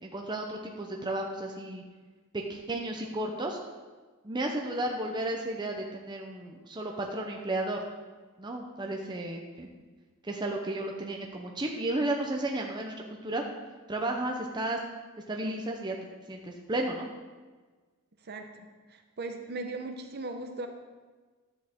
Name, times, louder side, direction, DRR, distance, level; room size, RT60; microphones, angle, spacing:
voice 1, 0.0-1.8 2.5-3.6 4.2-7.9 8.4-9.7 10.2-13.4 13.9-14.8 15.3-17.1, right 1 dB, 20° right, 1 dB, 0.7 m, -33 dB
voice 2, 19.2-20.7, right 2 dB, 45° right, 5 dB, 0.9 m, -37 dB
11.5 x 8.3 x 3.6 m, 1.4 s
head